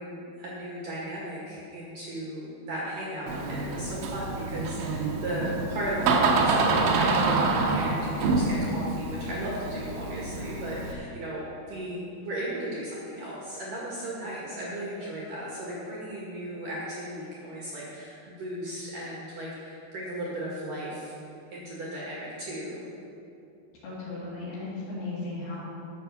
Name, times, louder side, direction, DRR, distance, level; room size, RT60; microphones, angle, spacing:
voice 1, 0.0-21.1 21.5-22.8, right 1 dB, 55° right, -6 dB, 2.8 m, -35 dB
Door, 3.3-10.9, right 3 dB, 80° right, 3.3 m, -27 dB
voice 2, 23.8-25.6, left 2 dB, 60° left, -7 dB, 4.7 m, -36 dB
12.0 x 7.2 x 7.0 m, 2.7 s
omnidirectional pair, 5.7 m